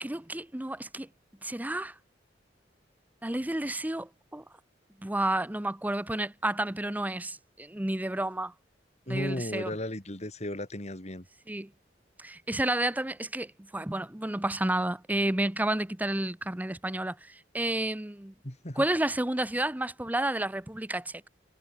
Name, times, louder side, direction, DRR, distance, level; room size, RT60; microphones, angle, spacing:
voice 1, 0.0-1.1 1.4-1.9 3.2-4.4 5.0-8.5 9.1-9.8 11.5-11.7 12.2-18.3 18.8-21.3, right 1 dB, 10° right, 0.7 m, -31 dB
voice 2, 9.1-11.2 18.4-18.9, left 1 dB, 40° left, 4.1 m, -35 dB
head